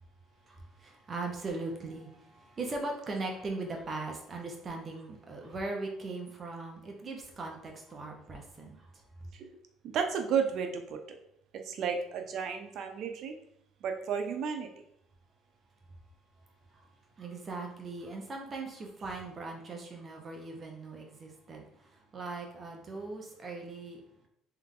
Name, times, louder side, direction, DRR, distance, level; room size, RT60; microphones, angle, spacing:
voice 1, 0.8-8.8 17.2-21.6 22.1-24.0, right 3 dB, 30° right, 1 dB, 1.0 m, -39 dB
voice 2, 9.8-11.2 11.7-13.3 13.8-14.7, right 6 dB, 60° right, 5 dB, 0.7 m, -32 dB
3.4 x 3.3 x 3.8 m, 0.75 s
cardioid pair, 110°, 0 cm